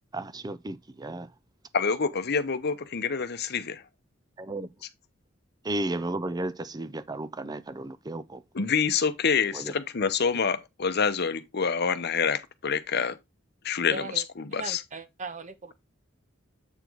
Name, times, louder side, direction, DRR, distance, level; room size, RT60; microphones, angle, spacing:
voice 1, 0.1-1.3 4.4-4.7 5.6-8.4 9.5-9.7, right 2 dB, 20° right, 0.5 m, -33 dB
voice 2, 1.7-3.8 8.5-13.2 13.6-14.8, left 6 dB, 55° left, 0.8 m, -27 dB
voice 3, 13.9-14.2 14.5-15.7, right 3 dB, 40° right, 0.9 m, -38 dB
8.1 x 3.9 x 4.6 m
head